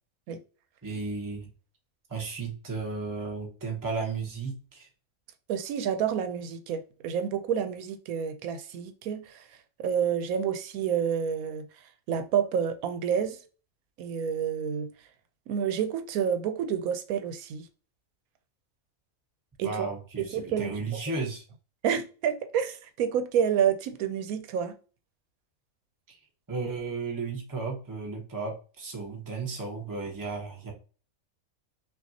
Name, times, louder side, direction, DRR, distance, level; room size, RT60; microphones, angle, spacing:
voice 1, 0.8-1.5 2.1-4.9 19.6-21.4 26.1-26.2 26.5-30.7, right 4 dB, 15° right, 0.8 m, -34 dB
voice 2, 5.5-9.4 9.8-11.7 12.1-13.4 14.0-14.9 15.5-17.7 19.6-19.9 20.2-20.7 21.8-24.7, right 8 dB, 85° right, 1.0 m, -29 dB
5.6 x 2.3 x 2.7 m
omnidirectional pair, 1.5 m